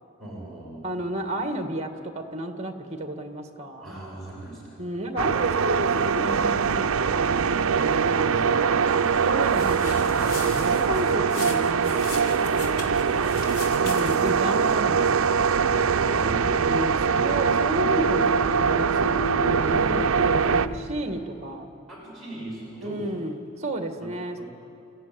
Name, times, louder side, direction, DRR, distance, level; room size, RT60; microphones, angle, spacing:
voice 1, 0.2-1.0 3.8-4.8 7.8-9.5 15.7-16.5 17.9-18.1 21.9-23.2 24.0-24.1 24.4-24.5, right 2 dB, ahead, -7 dB, 6.7 m, -39 dB
voice 2, 0.8-1.9 2.1-3.9 4.8-7.5 7.8-8.7 9.2-12.9 13.8-15.5 16.4-21.7 22.8-24.4, right 1 dB, 30° right, 5 dB, 1.9 m, -32 dB
sound 1, 5.2-20.7, right 6 dB, 75° right, 0.6 m, -23 dB
sound 2, 9.4-14.4, left 3 dB, 85° left, 3.2 m, -39 dB
sound 3, 14.8-20.8, equal, 45° left, 3.4 m, -34 dB
30.0 x 14.5 x 9.3 m, 2.8 s
head